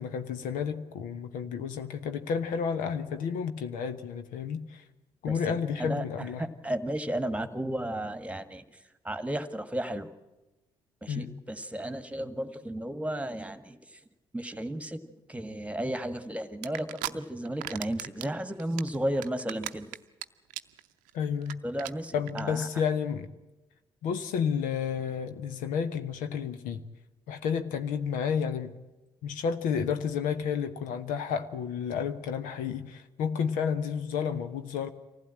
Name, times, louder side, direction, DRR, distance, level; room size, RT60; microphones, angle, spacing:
voice 1, 0.0-4.8 5.2-6.5 11.1-11.4 21.1-21.6 22.1-23.3 24.0-26.8 27.3-28.8 29.2-34.9, left 7 dB, 70° left, 1.1 m, -31 dB
voice 2, 5.3-8.6 9.0-10.1 11.0-13.8 14.3-15.0 15.3-19.9 21.6-22.7, right 1 dB, 10° right, 1.7 m, -34 dB
sound 1, 16.6-17.1 17.5-18.3 18.6-20.2 20.5-20.8 21.1-21.2 21.4-21.5 21.8-21.9 22.3-22.4, right 17 dB, 70° right, 0.6 m, -36 dB
24.0 x 15.5 x 8.8 m
hypercardioid pair, 45°, 14 cm